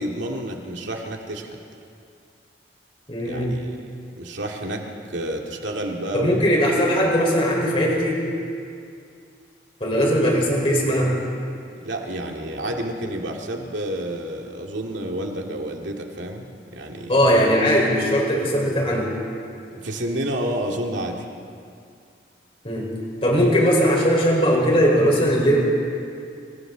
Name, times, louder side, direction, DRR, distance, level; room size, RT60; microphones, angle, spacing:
voice 1, 0.0-1.6 3.2-3.8 4.2-4.8 5.1-6.6 7.0-7.1 11.8-16.5 16.7-17.2 19.7-21.2, right 1 dB, 90° right, 1 dB, 2.4 m, -29 dB
voice 2, 3.1-3.5 6.1-8.2 9.8-11.1 17.1-19.1 22.6-22.9 23.2-25.6, equal, 30° left, -2 dB, 4.8 m, -19 dB
26.5 x 26.0 x 4.0 m, 2.4 s
head